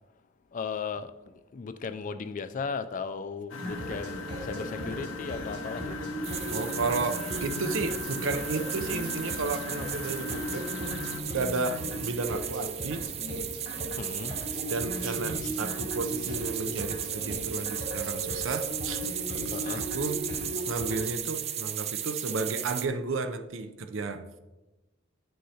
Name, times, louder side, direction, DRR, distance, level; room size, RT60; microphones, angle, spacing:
voice 1, 0.5-1.1 1.5-6.1 14.0-14.3 19.5-19.8, left 5 dB, 45° left, 0.4 m, -36 dB
Engine, 3.5-11.2, left 3 dB, 80° left, 0.7 m, -39 dB
sound 1, 3.6-21.1, equal, 60° right, 1.8 m, -37 dB
sound 2, 6.2-22.9, right 10 dB, 35° right, 0.4 m, -36 dB
voice 2, 6.5-10.7 11.3-13.1 14.7-19.0 19.4-20.3 20.7-24.2, right 3 dB, 80° right, 0.6 m, -33 dB
9.6 x 6.4 x 2.8 m
head